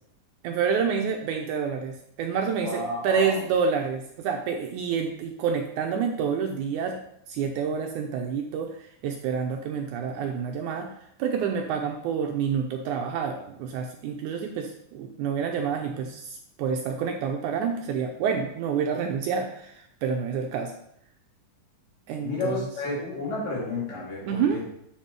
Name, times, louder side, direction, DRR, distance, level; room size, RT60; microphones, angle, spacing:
voice 1, 0.4-7.0 7.3-10.9 11.2-20.7 22.1-23.0 24.3-24.6, right 6 dB, 80° right, 3 dB, 1.8 m, -28 dB
voice 2, 2.6-3.4 22.2-24.7, left 2 dB, 75° left, -6 dB, 4.3 m, -31 dB
7.4 x 4.3 x 4.6 m, 0.72 s
omnidirectional pair, 3.9 m